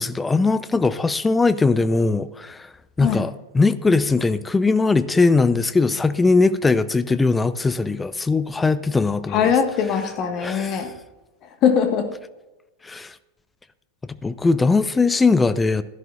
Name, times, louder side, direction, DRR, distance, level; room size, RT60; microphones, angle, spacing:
voice 1, 0.0-2.7 3.0-9.5 10.4-10.8 12.8-13.1 14.2-15.8, left 3 dB, 10° left, 0.5 m, -20 dB
voice 2, 9.3-10.9 11.6-12.1, left 7 dB, 35° left, 1.4 m, -21 dB
16.0 x 11.0 x 2.4 m
figure-of-eight pair, 90°, 0 cm